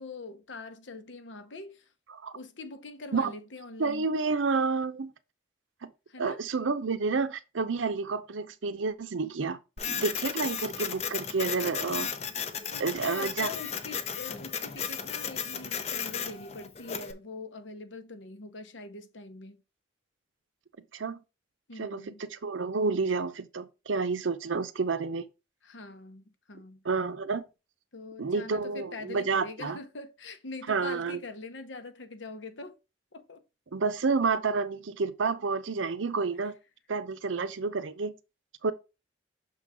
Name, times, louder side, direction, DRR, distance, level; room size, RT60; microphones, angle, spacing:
voice 1, 0.0-1.9 2.3-4.1 6.1-6.4 11.6-11.8 12.7-19.6 21.7-22.2 25.6-26.8 27.9-32.8 33.1-33.4, left 3 dB, 80° left, 0.9 m, -43 dB
voice 2, 3.8-5.1 5.8-5.9 6.2-9.6 9.9-12.1 12.8-13.5 20.9-21.2 21.8-25.3 26.8-27.4 28.2-29.8 30.7-31.2 33.7-36.5 36.9-38.1 38.6-38.7, right 4 dB, 90° right, 0.6 m, -29 dB
Printer, 9.8-17.1, left 7 dB, 35° left, 0.6 m, -35 dB
6.3 x 3.8 x 4.8 m
head